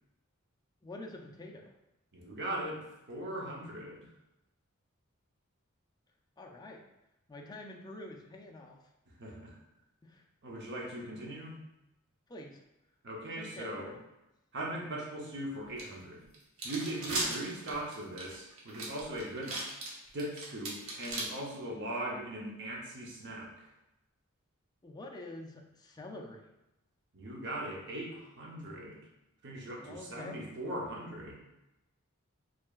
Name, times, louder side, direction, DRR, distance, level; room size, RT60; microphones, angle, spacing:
voice 1, 0.8-1.7 6.4-6.8 7.3-8.8 10.0-10.2 12.3-12.6 13.4-14.0 24.8-26.5 29.8-30.4, left 2 dB, 20° left, 1 dB, 0.4 m, -46 dB
voice 2, 2.1-4.1 9.2-9.6 10.4-11.6 13.0-13.9 14.5-16.3 16.6-19.6 20.1-23.6 27.1-29.0 29.4-31.4, right 1 dB, 55° right, -2 dB, 0.8 m, -39 dB
sound 1, 15.8-15.9 16.3-21.2, right 2 dB, 80° right, 1.0 m, -37 dB
4.8 x 2.9 x 2.4 m, 0.93 s
head